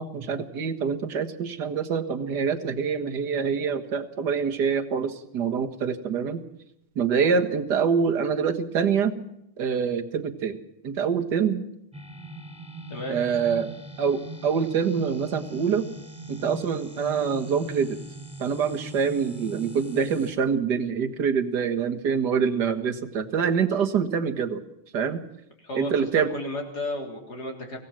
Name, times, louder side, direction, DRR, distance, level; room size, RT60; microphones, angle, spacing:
voice 1, 0.0-6.4 7.0-9.2 9.6-10.6 10.8-11.6 13.1-13.7 14.0-15.9 16.3-18.0 18.4-24.6 24.9-25.2 25.7-26.3, right 6 dB, 55° right, 7 dB, 2.1 m, -25 dB
sound 1, 11.9-20.4, right 1 dB, 5° right, 4.5 m, -41 dB
voice 2, 25.6-27.8, left 1 dB, 50° left, 2 dB, 4.3 m, -33 dB
25.0 x 17.0 x 7.5 m, 0.80 s
omnidirectional pair, 2.3 m